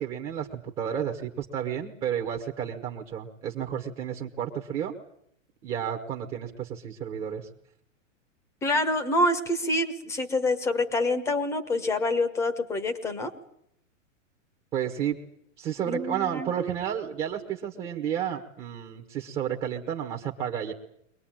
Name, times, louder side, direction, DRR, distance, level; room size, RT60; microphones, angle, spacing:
voice 1, 0.0-4.9 5.6-7.5 14.7-15.2 15.6-20.7, right 9 dB, 15° right, 2 dB, 1.2 m, -31 dB
voice 2, 8.6-13.3 15.9-16.5, left 2 dB, 5° left, 11 dB, 1.2 m, -26 dB
23.5 x 19.5 x 8.9 m, 0.71 s
supercardioid pair, 175°, 39 cm